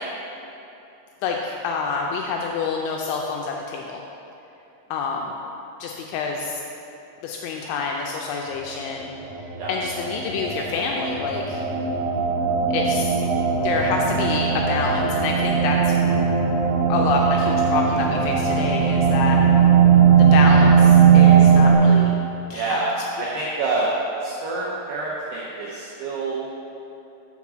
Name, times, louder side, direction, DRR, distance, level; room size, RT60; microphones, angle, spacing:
voice 1, 1.2-4.0 4.9-5.3 5.8-6.6 7.2-9.1 9.7-11.7 12.7-13.2 13.6-15.9 16.9-19.4 20.2-22.1 22.5-22.8, left 4 dB, 85° left, 0 dB, 2.7 m, -27 dB
sound 1, 9.4-21.7, right 7 dB, 65° right, 2.5 m, -18 dB
voice 2, 22.5-23.9 24.2-26.4, right 2 dB, 90° right, -5 dB, 2.2 m, -27 dB
5.9 x 5.9 x 6.0 m, 2.9 s
omnidirectional pair, 5.7 m